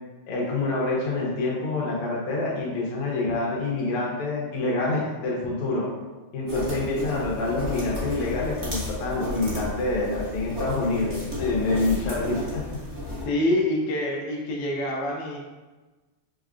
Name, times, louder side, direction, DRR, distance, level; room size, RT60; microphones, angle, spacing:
voice 1, 0.3-5.9 6.3-12.6, left 2 dB, 85° left, -4 dB, 1.8 m, -27 dB
sound 1, 6.5-13.2, left 1 dB, 20° right, 0.7 m, -33 dB
voice 2, 13.2-15.4, left 1 dB, 70° left, -2 dB, 1.1 m, -26 dB
5.3 x 2.2 x 2.4 m, 1.2 s
omnidirectional pair, 2.4 m